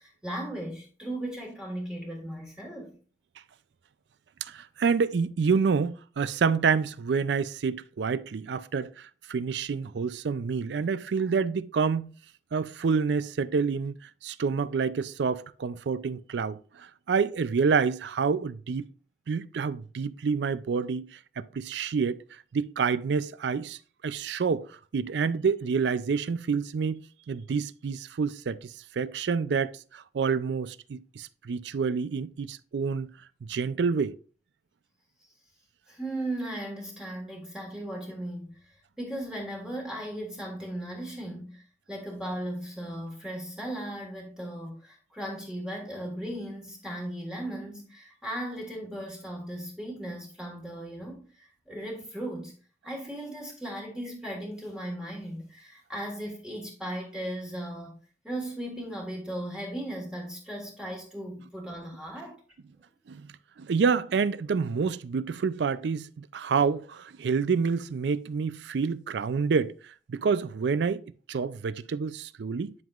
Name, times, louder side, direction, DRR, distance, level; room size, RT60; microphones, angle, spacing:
voice 1, 0.0-2.9 35.9-52.5 52.8-58.0 58.2-62.4, right 1 dB, 5° right, 1.5 m, -37 dB
voice 2, 4.4-12.1 12.5-18.8 19.3-27.0 27.3-33.1 33.4-34.2 63.1-63.3 63.6-71.0 71.3-72.7, right 5 dB, 75° right, 0.4 m, -28 dB
10.5 x 5.5 x 2.4 m
head